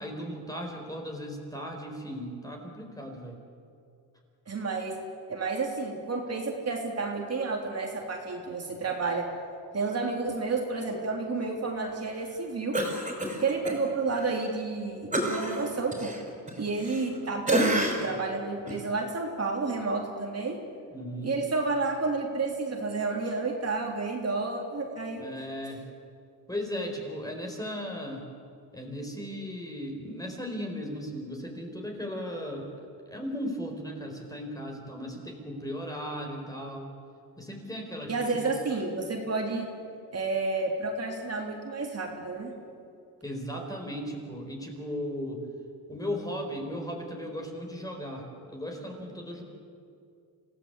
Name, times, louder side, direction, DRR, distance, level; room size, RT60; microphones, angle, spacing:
voice 1, 0.0-3.4 20.9-21.3 25.2-25.8 26.5-28.3 28.7-32.7 33.1-36.9 37.4-38.6 43.2-45.5 45.9-49.4, equal, 10° left, 1 dB, 4.7 m, -36 dB
voice 2, 4.5-5.0 5.3-9.3 9.7-12.8 13.4-16.1 16.6-20.6 21.2-25.3 38.1-39.7 40.1-42.5, right 3 dB, 35° right, 0 dB, 3.4 m, -30 dB
Cough, 12.7-13.8 14.2-14.3 15.1-17.2 17.5-18.2 18.7-18.8, right 1 dB, 15° right, 5.6 m, -29 dB
27.0 x 17.0 x 8.3 m, 2.4 s
cardioid pair, 110°, 41 cm